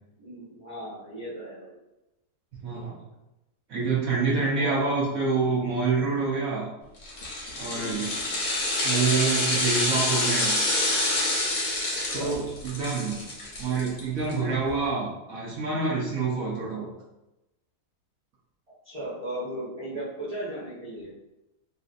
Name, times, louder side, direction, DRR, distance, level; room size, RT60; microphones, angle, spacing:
voice 1, 0.2-1.7 4.6-4.8 7.7-8.1 12.0-12.3 18.8-21.1, right 1 dB, 25° right, -12 dB, 1.0 m, -36 dB
voice 2, 2.5-2.9 3.7-6.7 7.6-8.1 8.8-10.6 12.1-13.2 13.6-16.9, right 4 dB, 65° right, -5 dB, 1.1 m, -27 dB
sound 1, 7.0-14.3 14.7-14.8, left 2 dB, 55° left, 1.1 m, -27 dB
3.1 x 2.7 x 2.5 m, 0.95 s
omnidirectional pair, 1.7 m